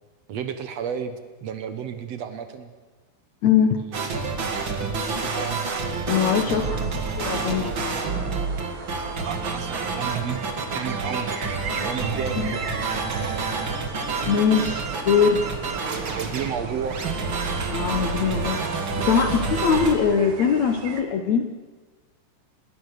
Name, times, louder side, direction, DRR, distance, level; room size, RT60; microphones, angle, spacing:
voice 1, 0.3-1.1 1.4-2.7 4.2-5.7 6.5-7.0 9.2-10.4 10.7-11.4 11.7-12.7 15.8-17.0, right 8 dB, 75° right, 9 dB, 1.5 m, -32 dB
voice 2, 3.4-3.8 6.1-7.9 12.3-12.5 14.3-15.4 17.7-18.6 19.0-21.5, left 7 dB, 70° left, 6 dB, 1.7 m, -22 dB
we wish you, 3.9-19.9, right 4 dB, 35° right, 2.3 m, -28 dB
sound 1, 6.6-21.0, right 5 dB, 50° right, 3.0 m, -38 dB
27.0 x 20.5 x 6.7 m, 1.3 s
omnidirectional pair, 4.9 m